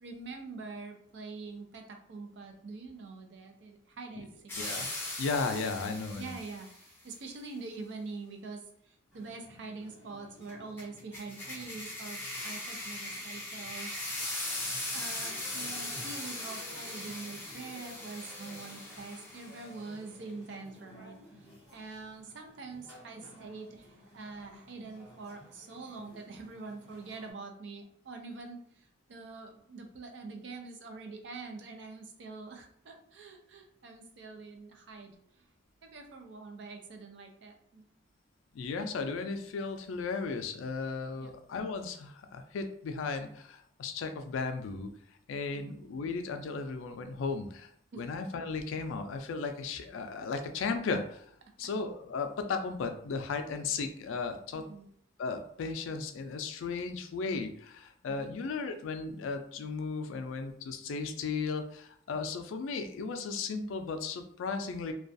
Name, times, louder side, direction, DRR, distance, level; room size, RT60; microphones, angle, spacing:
voice 1, 0.0-4.3 6.2-12.2 12.4-14.3 14.9-35.5 35.8-37.9 41.2-41.3 45.5-45.8 47.9-48.1 54.5-54.9 58.1-58.4, right 3 dB, 65° right, 4 dB, 0.4 m, -45 dB
sound 1, 4.5-6.8 10.8-19.7, left 1 dB, 10° left, 0.5 m, -39 dB
voice 2, 4.6-4.9 5.2-6.3 38.5-44.9 45.3-47.7 48.0-51.3 51.6-54.6 55.2-64.9, left 4 dB, 85° left, 7 dB, 0.3 m, -35 dB
sound 2, 9.1-27.3, equal, 10° right, 1.2 m, -54 dB
2.3 x 2.3 x 2.5 m, 0.64 s
head